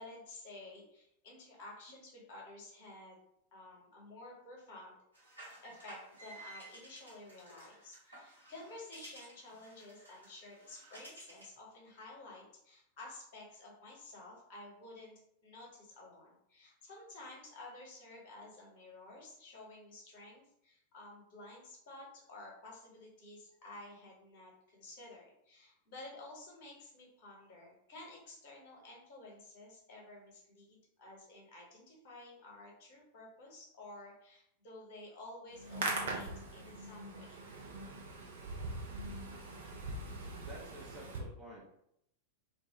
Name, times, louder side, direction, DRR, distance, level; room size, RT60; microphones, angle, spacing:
voice 1, 0.0-3.2 3.5-4.9 5.6-15.1 15.4-37.4, left 2 dB, 50° left, -2 dB, 0.9 m, -52 dB
sound 1, 5.1-11.6, right 2 dB, 80° right, 1.1 m, -55 dB
Hands, 35.5-41.2, right 2 dB, 60° right, 0.6 m, -41 dB
voice 2, 40.5-41.8, right 2 dB, 20° right, -4 dB, 0.6 m, -51 dB
2.2 x 2.1 x 2.8 m, 0.75 s
figure-of-eight pair, 90°, 0 cm